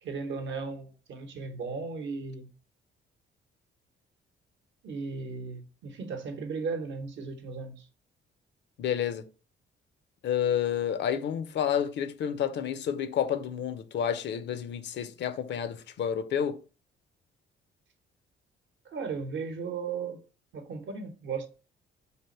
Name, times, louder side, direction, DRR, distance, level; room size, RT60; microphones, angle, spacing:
voice 1, 0.0-2.5 4.8-7.9 18.8-20.2 20.5-21.5, right 4 dB, 70° right, 0.8 m, -36 dB
voice 2, 8.8-9.2 10.2-16.6, left 9 dB, 65° left, 0.5 m, -30 dB
3.4 x 2.5 x 4.1 m
cardioid pair, 90°, 20 cm